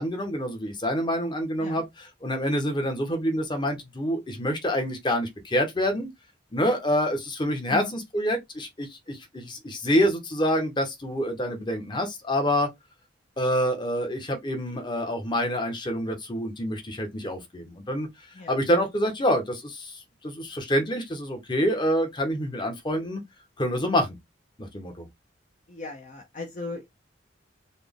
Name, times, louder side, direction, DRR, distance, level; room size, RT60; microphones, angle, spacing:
voice 1, 0.0-1.8 2.2-6.1 6.5-12.7 13.4-18.1 18.5-20.0 20.2-23.2 23.6-24.2 24.6-25.1, equal, 25° left, 0.9 m, -27 dB
voice 2, 25.7-26.9, left 3 dB, 40° left, 0.7 m, -37 dB
4.2 x 2.2 x 3.4 m
head